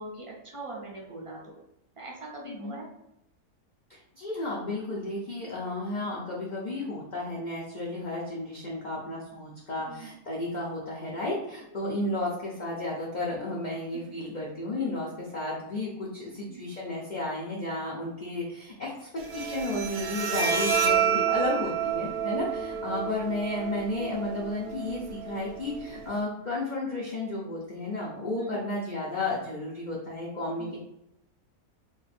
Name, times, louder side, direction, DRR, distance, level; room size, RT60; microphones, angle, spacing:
voice 1, 0.0-1.6 2.0-2.9 6.0-6.2 9.8-10.1 16.3-16.6 28.3-28.6 30.6-30.7, right 3 dB, 35° right, -3 dB, 0.5 m, -42 dB
voice 2, 2.4-2.8 4.2-30.8, left 2 dB, 55° left, -5 dB, 0.5 m, -33 dB
Bowed string instrument, 19.2-26.2, right 7 dB, 80° right, 1.1 m, -29 dB
2.6 x 2.5 x 4.1 m, 0.82 s
omnidirectional pair, 1.6 m